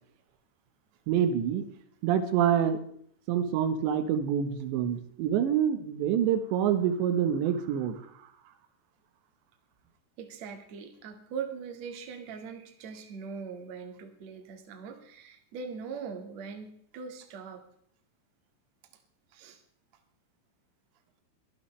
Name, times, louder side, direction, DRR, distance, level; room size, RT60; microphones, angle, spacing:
voice 1, 1.1-1.6 2.0-2.8 3.3-8.0, right 9 dB, 80° right, 9 dB, 3.4 m, -26 dB
voice 2, 10.2-17.7 19.3-19.6, right 6 dB, 50° right, 5 dB, 2.5 m, -41 dB
22.5 x 12.0 x 3.3 m, 0.66 s
omnidirectional pair, 5.1 m